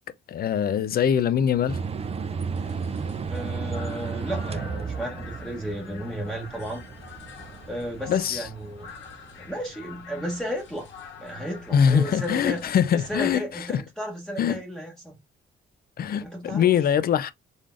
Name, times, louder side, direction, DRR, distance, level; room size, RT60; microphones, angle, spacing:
voice 1, 0.3-1.8 8.1-8.4 11.7-13.8 14.4-14.6 16.0-17.3, left 8 dB, 50° left, 0.5 m, -23 dB
sound 1, 1.0-13.4, left 5 dB, 70° left, 1.6 m, -46 dB
sound 2, 1.7-9.7, right 5 dB, 30° right, 0.5 m, -34 dB
voice 2, 3.3-6.8 7.7-8.9 9.4-10.9 11.2-12.6 12.9-15.2 16.2-16.7, equal, 5° left, 1.0 m, -34 dB
3.9 x 3.3 x 2.5 m
cardioid pair, 90°, 20 cm